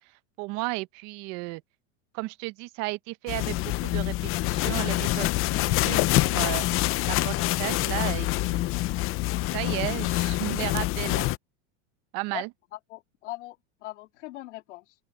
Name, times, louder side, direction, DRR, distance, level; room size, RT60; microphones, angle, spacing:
voice 1, 0.4-1.6 2.1-6.7 7.0-8.7 9.5-11.3 12.1-12.5, right 24 dB, 50° right, 0.8 m, -34 dB
sound 1, 3.3-11.4, left 18 dB, 40° left, 0.7 m, -26 dB
voice 2, 12.7-13.6 13.8-14.9, left 17 dB, 85° left, 2.1 m, -40 dB
open air
supercardioid pair, 135°, 35 cm